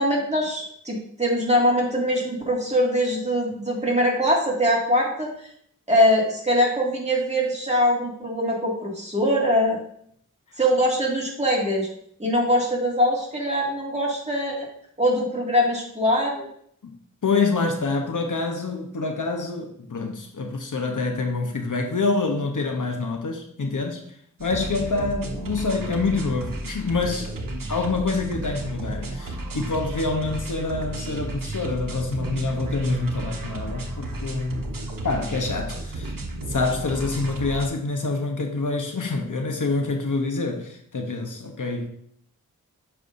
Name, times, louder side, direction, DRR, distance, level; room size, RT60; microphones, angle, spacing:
voice 1, 0.0-5.5 5.9-9.8 10.6-11.9 12.2-14.7 15.0-16.5, equal, 20° right, 2.1 m, -22 dB
voice 2, 17.2-24.0 24.4-27.3 27.7-34.7 35.0-36.1 36.5-41.9, left 3 dB, 70° left, 0.9 m, -26 dB
sound 1, 24.4-37.7, right 1 dB, 80° right, 0.9 m, -33 dB
6.8 x 5.5 x 2.6 m
wide cardioid pair, 60°, 33 cm